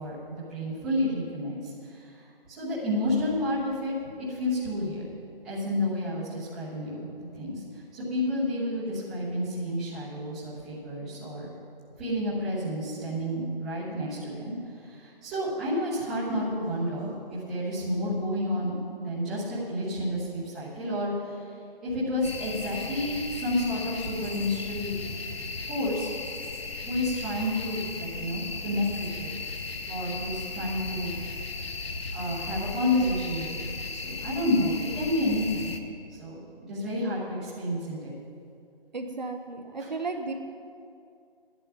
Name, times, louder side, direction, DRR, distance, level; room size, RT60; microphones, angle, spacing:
voice 1, 0.0-2.1 2.5-5.0 5.4-7.6 7.9-11.5 12.0-21.5 21.8-25.0 25.4-26.1 26.8-29.3 29.9-31.2 32.1-35.7 36.1-38.1 39.8-39.9, left 1 dB, ahead, -15 dB, 1.3 m, -30 dB
sound 1, 22.2-35.8, left 3 dB, 90° left, 1.4 m, -36 dB
voice 2, 38.9-40.3, right 3 dB, 50° right, 4 dB, 0.9 m, -34 dB
13.5 x 11.0 x 5.8 m, 2.5 s
hypercardioid pair, 180°, 29 cm